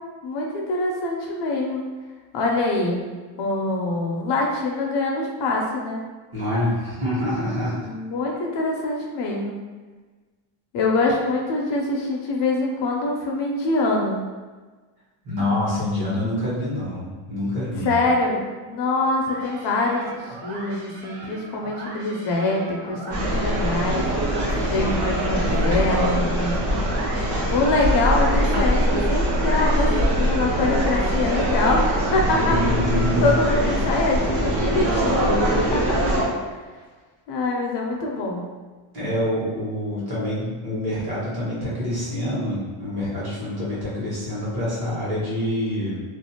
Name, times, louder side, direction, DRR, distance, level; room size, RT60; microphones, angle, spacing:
voice 1, 0.2-1.8 2.3-3.0 3.4-6.0 7.8-9.6 10.7-14.2 17.8-20.1 20.4-24.1 24.7-26.6 27.5-32.5 33.2-36.0 36.3-36.4 37.3-38.4, left 2 dB, 60° left, -1 dB, 0.5 m, -24 dB
voice 2, 6.3-7.9 15.2-17.9 32.3-33.4 38.9-46.0, left 1 dB, 50° right, -7 dB, 1.1 m, -26 dB
sound 1, 19.3-34.4, right 2 dB, 85° right, 0.8 m, -37 dB
sound 2, 23.1-36.2, equal, 70° right, 1.1 m, -22 dB
Walk footsteps, 24.4-24.8 25.5-25.7 26.5-26.9 27.5-27.8 28.7-29.0 30.0-30.4 30.8-31.1 31.7-32.2 33.1-33.6, right 1 dB, 20° right, 0.3 m, -40 dB
2.5 x 2.0 x 2.7 m, 1.3 s
cardioid pair, 160°, 49 cm